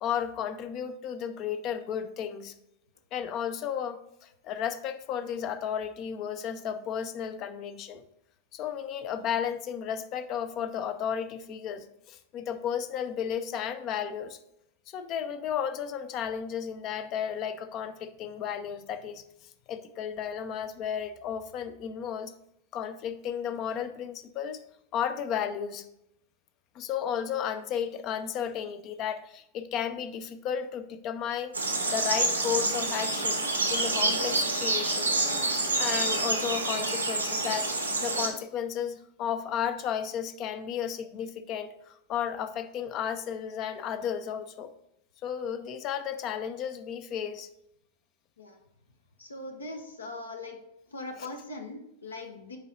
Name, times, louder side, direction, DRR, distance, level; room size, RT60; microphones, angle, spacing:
voice 1, 0.0-2.5 3.1-8.0 8.5-14.4 14.9-19.2 19.7-22.3 22.7-24.6 24.9-25.8 26.7-31.5 31.9-37.7 38.0-44.7 45.2-47.5 51.2-51.3, left 8 dB, 35° left, 10 dB, 0.5 m, -33 dB
sound 1, 31.5-38.3, right 2 dB, 80° right, 0.9 m, -28 dB
voice 2, 49.2-50.6 50.9-52.6, left 2 dB, 75° left, 4 dB, 0.8 m, -40 dB
5.6 x 4.7 x 3.9 m, 0.79 s
figure-of-eight pair, 90°, 0 cm